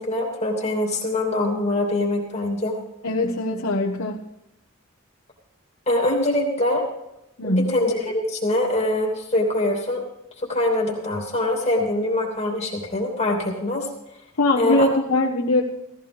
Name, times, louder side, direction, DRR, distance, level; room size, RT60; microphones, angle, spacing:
voice 1, 0.0-2.7 5.9-6.8 7.4-10.0 10.5-13.9 14.6-14.9, left 1 dB, 30° left, -1 dB, 2.8 m, -23 dB
voice 2, 3.0-4.2 7.4-7.7 14.4-15.6, left 1 dB, 80° left, -3 dB, 1.4 m, -21 dB
17.5 x 14.5 x 3.5 m, 0.83 s
head